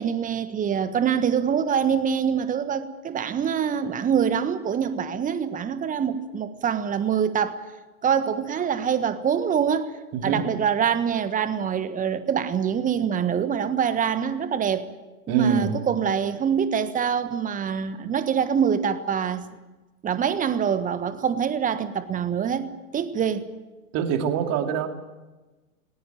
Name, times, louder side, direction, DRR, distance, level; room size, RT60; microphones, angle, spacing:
voice 1, 0.0-7.6 8.0-9.9 10.2-14.9 15.3-19.5 20.0-23.5, right 7 dB, 20° right, 12 dB, 1.4 m, -25 dB
voice 2, 10.1-10.5 15.3-15.8 23.9-24.9, right 7 dB, 35° right, 6 dB, 2.6 m, -24 dB
20.5 x 19.0 x 9.1 m, 1.2 s
figure-of-eight pair, 95°, 41 cm